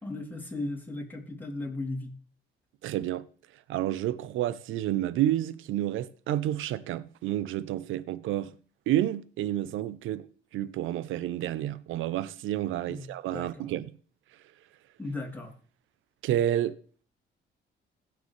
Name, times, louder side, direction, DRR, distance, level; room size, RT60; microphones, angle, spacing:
voice 1, 0.0-2.1 12.9-13.7 15.0-15.5, left 2 dB, 10° left, 3.1 m, -36 dB
voice 2, 2.8-3.3 3.7-8.5 8.9-10.3 10.5-13.9 16.2-16.8, right 12 dB, 85° right, 0.6 m, -30 dB
16.5 x 6.8 x 3.3 m
cardioid pair, 90°, 20 cm